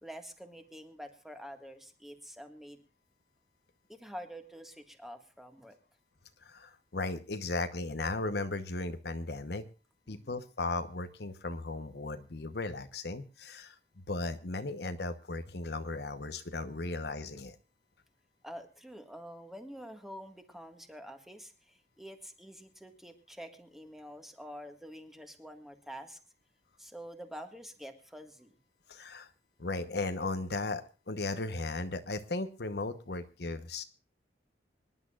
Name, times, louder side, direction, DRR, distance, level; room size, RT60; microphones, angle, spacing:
voice 1, 0.0-2.8 3.9-5.8 10.1-10.3 18.4-26.2 26.8-28.6, equal, ahead, 5 dB, 1.7 m, -47 dB
voice 2, 6.4-9.6 10.1-13.8 14.1-17.6 28.9-29.3 29.6-33.8, left 2 dB, 65° left, 9 dB, 1.0 m, -36 dB
25.5 x 11.0 x 2.4 m, 0.33 s
head